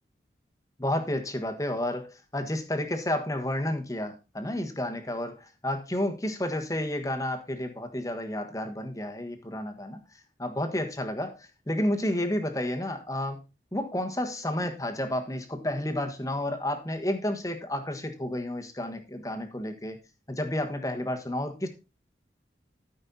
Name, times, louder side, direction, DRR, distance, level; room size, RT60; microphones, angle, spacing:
voice 1, 0.8-10.0 10.4-13.4 13.7-20.0 20.3-21.7, left 1 dB, 20° left, 5 dB, 1.4 m, -31 dB
13.5 x 5.5 x 4.1 m, 0.29 s
head